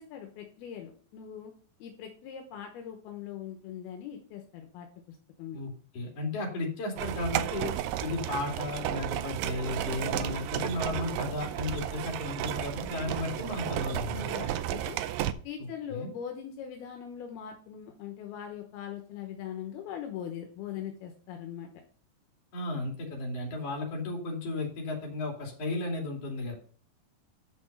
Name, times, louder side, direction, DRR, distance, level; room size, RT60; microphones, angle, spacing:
voice 1, 0.0-1.5 1.8-5.6 14.2-15.0 15.4-21.7, left 9 dB, 75° left, 4 dB, 3.0 m, -41 dB
voice 2, 5.5-7.7 8.0-14.2 15.6-16.1 22.5-26.6, left 2 dB, 40° left, 0 dB, 3.4 m, -34 dB
sound 1, 7.0-15.3, right 12 dB, 85° right, 2.7 m, -33 dB
9.5 x 6.1 x 5.4 m, 0.43 s
omnidirectional pair, 4.6 m